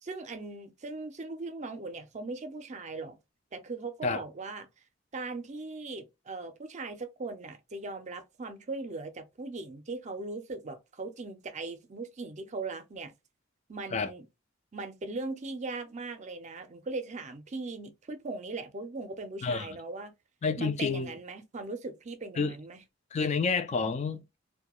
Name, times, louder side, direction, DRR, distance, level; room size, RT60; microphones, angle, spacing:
voice 1, 0.0-3.2 3.5-4.7 5.1-13.1 13.7-14.3 14.7-20.1 20.6-22.8, right 3 dB, 35° right, 0.5 m, -39 dB
voice 2, 20.4-21.1 22.4-22.5 23.1-24.4, left 4 dB, 35° left, 0.3 m, -29 dB
2.2 x 2.2 x 2.9 m
head